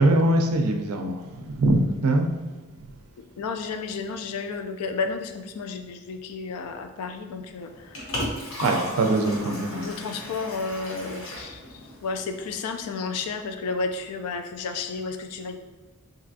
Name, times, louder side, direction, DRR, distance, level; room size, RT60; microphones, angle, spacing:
voice 1, 0.0-2.3 8.6-9.9, right 1 dB, 75° right, 4 dB, 0.4 m, -22 dB
voice 2, 3.4-8.1 9.2-9.5 9.7-15.6, left 4 dB, 85° left, 7 dB, 0.3 m, -32 dB
Liquid, 7.6-12.6, left 1 dB, 65° left, 0.8 m, -35 dB
3.2 x 2.7 x 2.6 m, 1.2 s
head